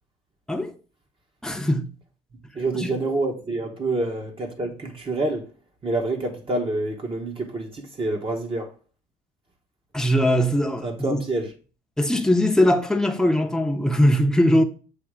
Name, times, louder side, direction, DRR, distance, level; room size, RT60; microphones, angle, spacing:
voice 1, 1.4-1.9 2.7-2.9 9.9-11.2 12.0-14.6, left 1 dB, 5° left, 0.8 m, -20 dB
voice 2, 2.5-5.4 5.8-8.7 10.8-11.5, right 2 dB, 30° right, 1.1 m, -27 dB
6.9 x 2.8 x 4.8 m
cardioid pair, 110°, 17 cm